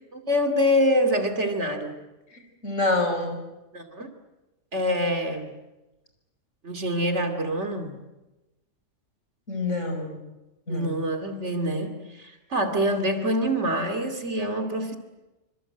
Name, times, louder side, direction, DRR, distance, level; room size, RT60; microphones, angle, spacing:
voice 1, 0.1-2.0 3.7-4.1 4.7-5.5 6.6-8.0 10.7-15.0, equal, 65° right, 6 dB, 2.9 m, -25 dB
voice 2, 2.3-3.4 9.5-10.2 10.7-10.9, left 2 dB, 75° left, 4 dB, 5.9 m, -27 dB
27.0 x 25.0 x 7.9 m, 1.0 s
omnidirectional pair, 1.3 m